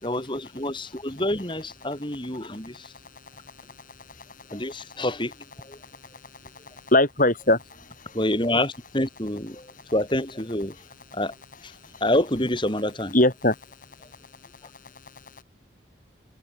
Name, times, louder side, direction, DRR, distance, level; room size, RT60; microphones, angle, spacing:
voice 1, 0.0-2.9 4.5-5.3 5.7-5.8 8.1-9.7 9.9-10.7 11.1-11.3 12.0-13.1, left 1 dB, 25° left, 4.9 m, -27 dB
voice 2, 4.5-4.8 6.9-7.6 8.1-8.2 13.1-13.6, left 1 dB, 40° left, 6.0 m, -20 dB
head